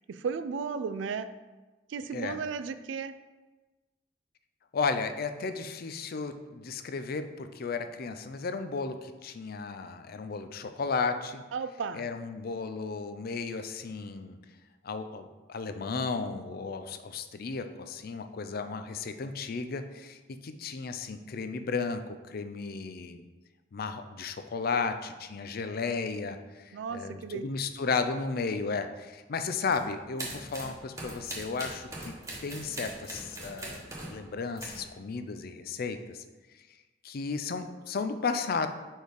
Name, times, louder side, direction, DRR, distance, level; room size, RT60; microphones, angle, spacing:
voice 1, 0.1-1.3 1.9-3.2 11.5-12.0 26.7-27.4, right 5 dB, 85° right, 12 dB, 0.4 m, -34 dB
voice 2, 4.7-11.4 11.9-14.4 14.8-23.3 23.7-32.1 32.4-36.2 37.0-38.7, left 4 dB, 55° left, 8 dB, 0.5 m, -34 dB
sound 1, 29.7-29.8 30.2-34.2 34.6-34.9, right 1 dB, 20° right, 1.2 m, -41 dB
4.7 x 4.5 x 5.1 m, 1.2 s
head